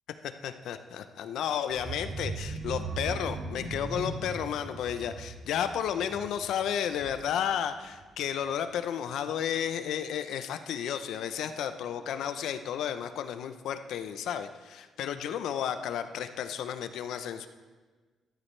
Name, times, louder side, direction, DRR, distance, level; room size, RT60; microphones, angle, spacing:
voice 1, 0.2-17.5, left 9 dB, 80° left, 9 dB, 0.7 m, -32 dB
sound 1, 1.7-7.5 7.8-8.1 8.4-8.5, right 3 dB, 45° right, 2.0 m, -39 dB
14.0 x 11.5 x 3.3 m, 1.4 s
cardioid pair, 90°, 0 cm